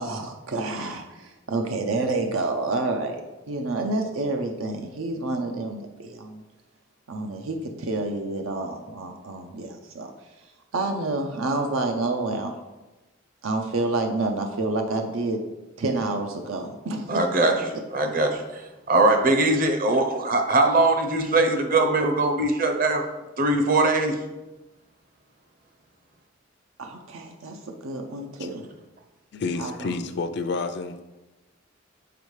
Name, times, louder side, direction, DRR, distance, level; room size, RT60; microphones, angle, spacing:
voice 1, 0.0-3.2 3.5-6.4 7.1-10.1 10.7-12.6 13.4-15.4 15.8-17.2 26.8-28.6 29.6-30.0, right 2 dB, 90° right, 4 dB, 0.6 m, -28 dB
voice 2, 17.1-17.5 17.9-23.0 23.4-24.2, right 2 dB, 45° right, 5 dB, 0.7 m, -21 dB
voice 3, 29.3-31.0, left 4 dB, 55° left, 9 dB, 0.4 m, -29 dB
6.9 x 4.4 x 3.2 m, 1.1 s
head